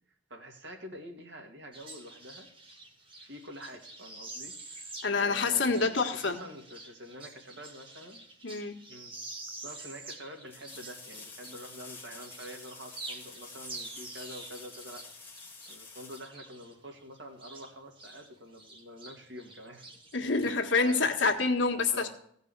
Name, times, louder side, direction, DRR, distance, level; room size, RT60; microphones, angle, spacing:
voice 1, 0.3-2.5 3.2-8.3 8.9-9.1 9.6-15.1 15.7-19.9 20.4-20.6 20.9-21.1 21.9-22.1, equal, 75° right, 2 dB, 2.4 m, -47 dB
sound 1, 1.7-11.9 12.2-18.3 18.5-21.3, right 2 dB, 25° right, 1.6 m, -47 dB
voice 2, 5.0-6.4 8.4-8.8 20.1-22.1, left 4 dB, 80° left, 3 dB, 1.6 m, -27 dB
sound 2, 9.1-9.2 10.5-17.1 19.9-20.0, left 4 dB, 10° left, 1.5 m, -49 dB
16.0 x 5.4 x 8.1 m, 0.66 s
head